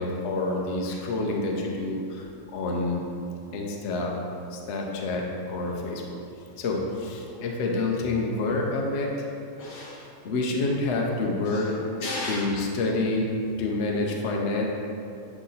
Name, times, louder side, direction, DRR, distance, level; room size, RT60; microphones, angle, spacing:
voice 1, 0.0-2.3 2.5-3.1 3.5-4.2 4.5-6.2 6.6-9.1 10.2-11.7 12.3-13.3 13.6-14.6, left 2 dB, 60° left, 0 dB, 0.8 m, -28 dB
voice 2, 7.2-7.5 9.5-10.1 11.4-12.5 13.7-13.8, left 2 dB, 85° left, -4 dB, 1.7 m, -36 dB
8.2 x 3.0 x 4.0 m, 2.6 s
omnidirectional pair, 1.7 m